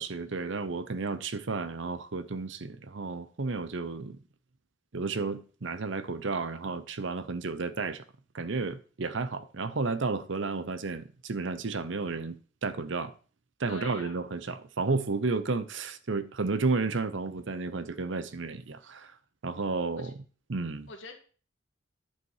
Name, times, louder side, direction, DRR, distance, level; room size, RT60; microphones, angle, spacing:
voice 1, 0.0-4.2 4.9-8.0 8.3-13.1 13.6-19.1 19.4-20.1 20.5-20.9, right 3 dB, 65° right, 0.8 m, -32 dB
voice 2, 13.7-14.2 20.0-20.1 20.9-21.2, left 2 dB, 70° left, 2.0 m, -45 dB
11.0 x 5.8 x 4.8 m
head